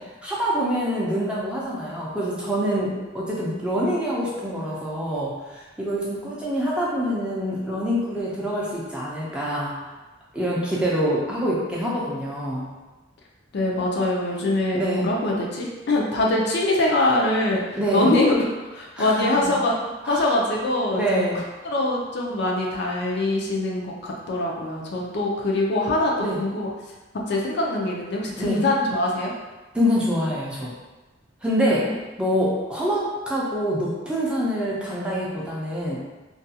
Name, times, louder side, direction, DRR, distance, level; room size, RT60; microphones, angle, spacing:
voice 1, 0.2-9.7 10.3-12.7 14.7-15.1 17.7-18.1 19.0-19.4 20.0-20.3 20.9-21.4 26.2-26.4 28.4-28.6 29.7-30.7 31.4-31.9 32.2-36.0, equal, 5° right, -7 dB, 0.5 m, -25 dB
voice 2, 13.5-18.3 18.7-19.8 20.0-21.2 21.6-26.7 27.3-29.3 31.7-31.9, left 2 dB, 60° left, -2 dB, 0.4 m, -23 dB
2.4 x 2.2 x 2.7 m, 1.2 s
head